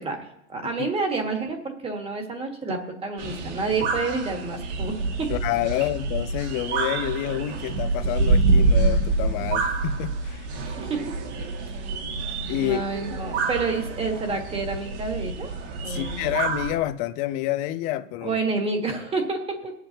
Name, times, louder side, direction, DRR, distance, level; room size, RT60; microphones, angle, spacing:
voice 1, 0.0-5.3 10.6-11.0 11.8-11.9 12.6-15.5 15.8-16.3 18.2-19.7, right 3 dB, 15° right, 1.5 m, -29 dB
sound 1, 3.2-16.7, right 3 dB, 60° right, 2.2 m, -26 dB
voice 2, 5.3-10.6 11.4-11.5 12.5-12.8 13.1-13.2 15.9-18.4, left 14 dB, 25° left, 0.3 m, -28 dB
21.5 x 7.9 x 2.8 m
supercardioid pair, 140°, 37 cm